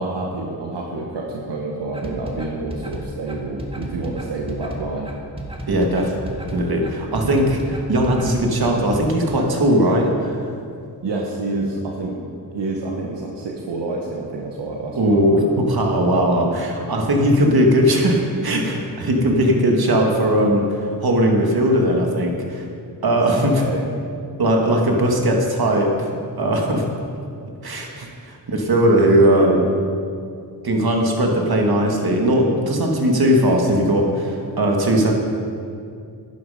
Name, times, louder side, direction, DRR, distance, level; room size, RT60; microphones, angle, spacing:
voice 1, 0.0-5.1 7.2-7.5 11.0-12.2 12.5-15.5 23.1-23.8 29.4-29.7, right 2 dB, 85° right, -1 dB, 1.3 m, -28 dB
sound 1, 1.9-9.0, right 1 dB, 15° right, 1.9 m, -33 dB
voice 2, 5.7-6.1 6.5-10.5 14.9-22.6 23.0-23.6 24.4-26.1 26.4-26.8 27.6-29.6 30.6-35.1, equal, 60° right, 1 dB, 2.0 m, -18 dB
11.0 x 11.0 x 5.1 m, 2.4 s
wide cardioid pair, 75°, 41 cm